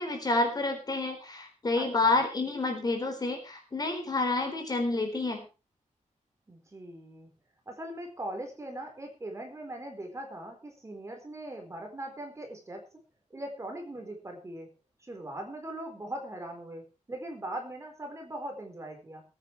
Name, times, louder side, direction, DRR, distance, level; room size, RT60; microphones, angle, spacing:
voice 1, 0.0-5.4, left 2 dB, 30° left, 4 dB, 4.1 m, -29 dB
voice 2, 1.7-2.1 6.5-7.3 7.7-12.8 13.3-14.7 15.0-19.2, right 1 dB, 20° right, 3 dB, 4.2 m, -40 dB
20.5 x 9.3 x 4.6 m, 0.32 s
wide cardioid pair, 175°, 13 cm